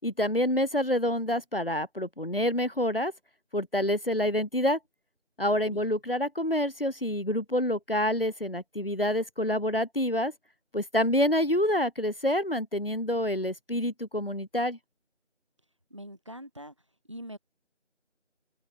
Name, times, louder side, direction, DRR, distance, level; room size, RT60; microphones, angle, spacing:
voice 1, 0.0-3.1 3.5-4.8 5.4-10.3 10.7-14.8, left 1 dB, 50° left, 5.0 m, -27 dB
voice 2, 5.7-6.0 15.9-16.7 17.1-17.4, equal, 25° right, 7.0 m, -43 dB
figure-of-eight pair, 180°, 35 cm